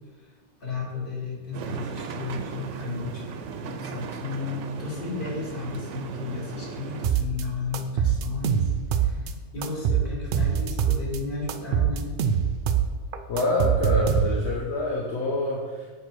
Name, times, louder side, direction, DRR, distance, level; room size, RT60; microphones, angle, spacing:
voice 1, 0.2-3.3 3.6-12.1 12.5-12.6, left 3 dB, 45° left, -3 dB, 1.8 m, -34 dB
sound 1, 1.5-7.1, right 6 dB, 85° right, 0.9 m, -37 dB
sound 2, 7.0-7.4 7.7-9.3 9.6-11.2 11.5-14.6, right 8 dB, 60° right, 0.6 m, -24 dB
voice 2, 13.3-15.9, left 1 dB, 70° left, -3 dB, 1.2 m, -26 dB
7.7 x 2.8 x 6.0 m, 1.3 s
omnidirectional pair, 1.2 m